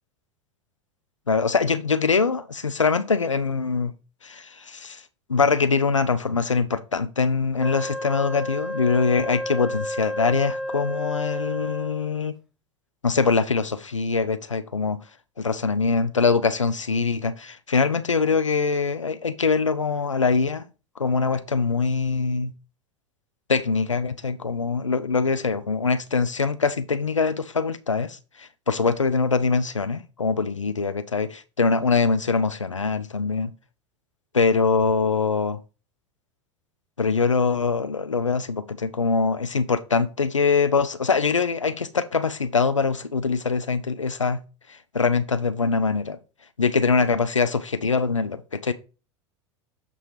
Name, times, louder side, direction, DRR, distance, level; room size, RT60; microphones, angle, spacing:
voice 1, 1.3-3.9 4.2-5.0 5.3-12.3 13.0-15.0 15.4-20.7 21.0-22.5 23.5-33.5 34.3-35.6 37.0-44.4 44.7-46.2 46.6-48.7, left 4 dB, 85° left, 0.6 m, -23 dB
Wind instrument woodwind instrument, 7.6-12.2, equal, 5° right, 0.8 m, -31 dB
7.0 x 2.9 x 5.6 m
figure-of-eight pair, 85°, 16 cm